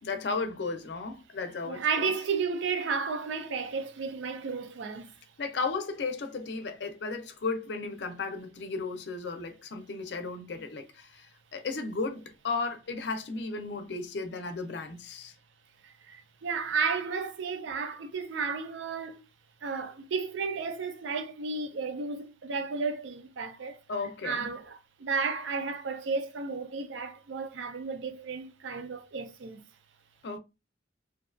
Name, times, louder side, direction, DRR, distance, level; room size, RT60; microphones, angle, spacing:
voice 1, 0.0-2.1 5.4-15.3 23.9-24.5 30.2-30.4, left 4 dB, 65° left, 0.5 m, -35 dB
voice 2, 1.7-5.2 15.8-19.2 19.6-23.8 24.2-29.6, right 5 dB, 80° right, 0.4 m, -33 dB
2.6 x 2.3 x 2.4 m
head